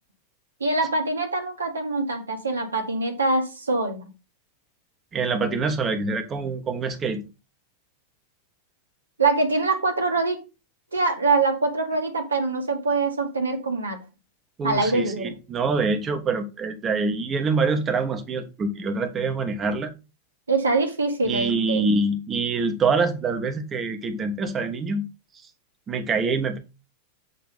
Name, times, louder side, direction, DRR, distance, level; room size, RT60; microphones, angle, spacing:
voice 1, 0.6-4.1 9.2-10.4 10.9-14.0 14.6-15.3 20.5-21.8, right 3 dB, 75° right, 5 dB, 1.7 m, -24 dB
voice 2, 5.1-7.2 14.6-19.9 21.3-25.1 25.9-26.6, right 4 dB, 25° right, 7 dB, 1.4 m, -25 dB
8.2 x 3.6 x 5.6 m, 0.29 s
figure-of-eight pair, 90°, 0 cm